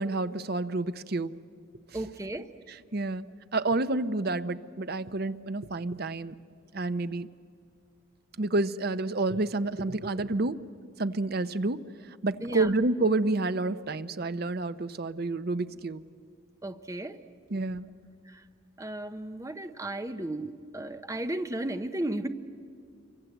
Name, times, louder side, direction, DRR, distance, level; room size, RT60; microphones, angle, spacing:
voice 1, 0.0-1.3 2.7-3.2 3.5-6.3 6.7-7.3 8.4-10.6 11.0-11.8 12.2-16.0 17.5-17.9, right 2 dB, 50° right, 13 dB, 0.7 m, -29 dB
voice 2, 1.9-2.5 12.4-12.7 16.6-17.2 18.3-18.4 18.8-22.3, right 1 dB, 15° right, 9 dB, 0.7 m, -34 dB
27.5 x 24.5 x 8.0 m, 2.4 s
head